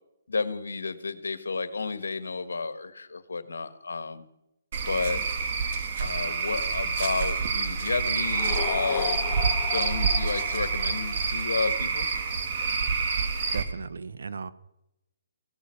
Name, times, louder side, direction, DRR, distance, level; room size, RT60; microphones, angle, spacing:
voice 1, 0.3-4.3 4.9-5.2 6.0-9.2 9.6-12.1, left 4 dB, 85° left, 13 dB, 1.5 m, -31 dB
Cricket / Frog, 4.7-13.6, right 5 dB, 50° right, 2.3 m, -28 dB
sound 1, 8.2-11.2, left 11 dB, 30° left, 0.9 m, -35 dB
voice 2, 13.5-14.5, right 5 dB, 75° right, 14 dB, 1.0 m, -36 dB
17.0 x 12.5 x 6.4 m, 0.86 s
hypercardioid pair, 145°, 0 cm